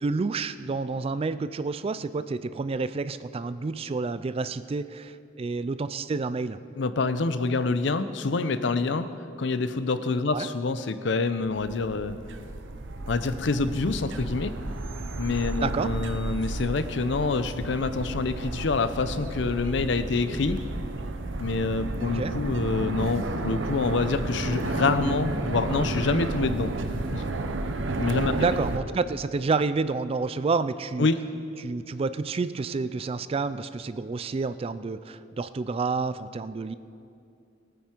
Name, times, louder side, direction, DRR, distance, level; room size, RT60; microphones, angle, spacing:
voice 1, 0.0-6.6 10.3-10.5 15.6-15.9 22.0-22.3 28.3-31.1 31.6-36.8, right 4 dB, 30° right, 14 dB, 0.3 m, -29 dB
voice 2, 6.8-9.1 9.4-12.2 13.1-14.5 15.2-20.6 21.4-26.7 27.1-27.2 28.0-28.3 31.0-31.2, left 3 dB, 70° left, 11 dB, 0.6 m, -26 dB
sound 1, 11.4-28.8, right 2 dB, 85° right, 0.8 m, -32 dB
19.0 x 9.3 x 4.5 m, 2.5 s
head